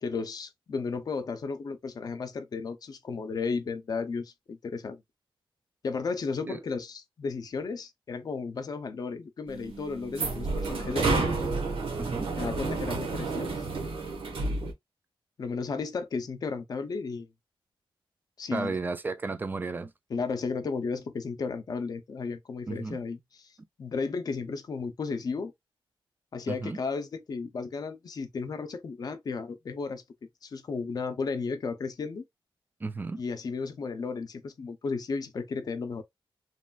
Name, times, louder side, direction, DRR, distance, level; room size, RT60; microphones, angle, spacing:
voice 1, 0.0-5.0 5.8-11.3 12.4-13.6 15.4-17.3 18.4-18.8 20.1-23.4 23.8-25.5 26.3-30.0 30.4-32.2 33.2-36.0, left 4 dB, 45° left, 0.5 m, -34 dB
sound 1, 9.5-14.7, right 3 dB, 80° right, 1.0 m, -30 dB
voice 2, 12.0-12.4 18.5-19.9 22.7-23.0 26.5-26.8 32.8-33.2, right 3 dB, 20° right, 0.3 m, -33 dB
3.0 x 2.4 x 2.2 m
wide cardioid pair, 180°, 9 cm